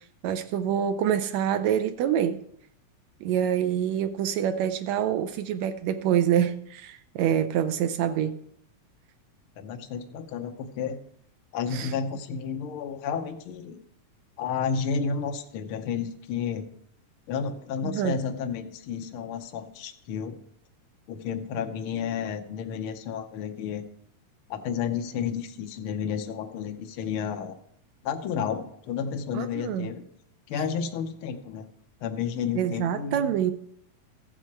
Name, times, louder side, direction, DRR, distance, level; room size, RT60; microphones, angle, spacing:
voice 1, 0.2-2.4 3.2-8.4 11.7-11.9 17.8-18.2 29.3-29.9 32.6-33.5, right 9 dB, 80° right, 10 dB, 1.7 m, -26 dB
voice 2, 9.6-11.0 11.5-13.8 14.4-16.7 17.3-20.4 21.1-23.8 24.5-27.6 28.0-30.0 30.5-31.7 32.0-33.3, left 6 dB, 75° left, 5 dB, 1.3 m, -31 dB
15.0 x 6.2 x 4.6 m, 0.70 s
omnidirectional pair, 3.4 m